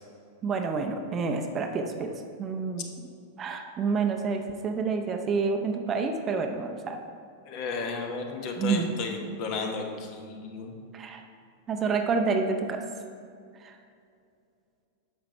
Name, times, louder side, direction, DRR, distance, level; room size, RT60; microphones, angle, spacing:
voice 1, 0.4-2.1 2.4-2.8 3.4-7.0 8.6-8.9 10.9-11.2 11.7-12.8, right 4 dB, 25° right, 5 dB, 0.6 m, -28 dB
voice 2, 7.4-10.8, left 4 dB, 40° left, 3 dB, 1.0 m, -33 dB
9.7 x 6.8 x 3.2 m, 2.4 s
figure-of-eight pair, 90°, 0 cm